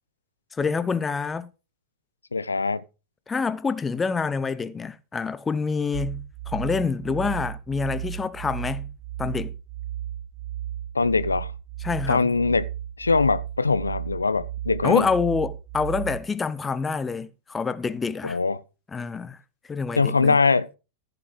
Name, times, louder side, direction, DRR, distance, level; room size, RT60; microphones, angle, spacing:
voice 1, 0.5-1.5 3.3-8.9 9.2-9.5 11.8-12.3 14.8-18.4 18.9-19.4 19.7-20.4, left 5 dB, 15° left, 0.8 m, -27 dB
voice 2, 2.3-2.8 10.9-11.5 12.1-12.7 13.0-15.0 18.2-18.6 20.0-20.7, left 4 dB, 80° left, 0.5 m, -22 dB
sound 1, 5.9-16.2, right 11 dB, 50° right, 0.6 m, -34 dB
14.5 x 5.9 x 5.2 m
figure-of-eight pair, 90°, 0 cm